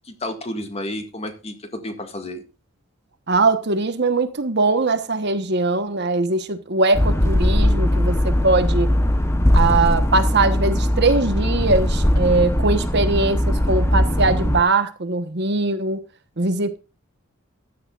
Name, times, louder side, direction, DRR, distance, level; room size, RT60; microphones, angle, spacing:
voice 1, 0.1-2.4, left 1 dB, 30° left, 1.9 m, -31 dB
voice 2, 3.3-8.9 9.5-16.0 16.4-16.8, right 3 dB, 55° right, 1.2 m, -21 dB
sound 1, 6.9-14.6, left 1 dB, 15° left, 1.0 m, -19 dB
15.0 x 11.0 x 2.5 m
head